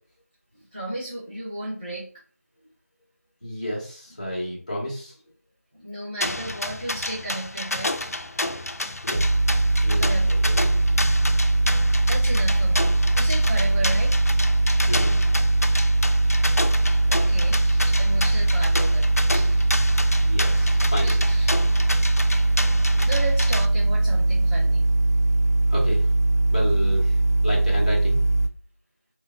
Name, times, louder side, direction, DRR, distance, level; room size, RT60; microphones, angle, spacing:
voice 1, 0.7-2.1 5.7-8.1 10.0-10.4 10.9-11.1 11.7-14.1 17.1-19.7 20.1-20.3 21.0-21.6 23.0-24.9, right 1 dB, 20° right, -8 dB, 0.6 m, -34 dB
voice 2, 3.4-5.1 9.0-9.2 9.8-10.6 14.9-15.1 20.2-21.2 22.9-23.1 25.7-26.1 26.5-28.2, equal, 25° left, -4 dB, 0.9 m, -31 dB
sound 1, 6.2-23.7, left 2 dB, 70° left, 0.4 m, -30 dB
sound 2, 9.1-28.5, right 2 dB, 80° right, 0.4 m, -21 dB
3.3 x 2.2 x 3.7 m, 0.43 s
figure-of-eight pair, 175°, 9 cm